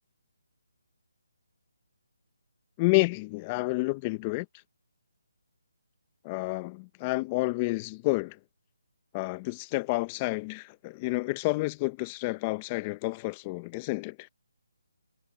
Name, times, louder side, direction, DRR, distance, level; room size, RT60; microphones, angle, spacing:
voice 1, 2.8-4.5 6.2-8.4 9.1-14.2, left 24 dB, 20° left, 0.9 m, -29 dB
hypercardioid pair, 160°, 0 cm